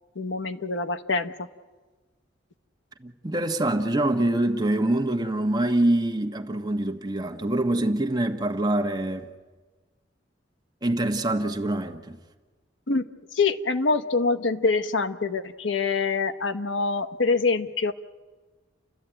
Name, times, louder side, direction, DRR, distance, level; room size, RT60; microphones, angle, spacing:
voice 1, 0.2-1.5 12.9-13.1 13.3-17.9, left 4 dB, 80° left, 0.9 m, -25 dB
voice 2, 3.0-9.3 10.8-12.2, right 1 dB, 20° right, 1.2 m, -25 dB
29.5 x 12.5 x 9.0 m
head